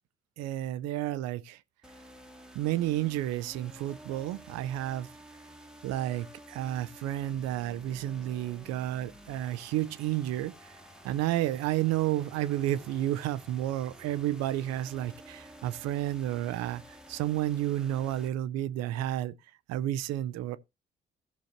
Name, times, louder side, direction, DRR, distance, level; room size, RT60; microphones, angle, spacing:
voice 1, 0.4-1.6 2.5-5.1 5.8-10.7 11.0-16.8 17.1-19.3 19.7-20.6, right 13 dB, 60° right, 0.6 m, -31 dB
sound 1, 1.8-18.3, right 1 dB, ahead, 1.3 m, -52 dB
16.5 x 6.3 x 2.9 m
figure-of-eight pair, 40°, 29 cm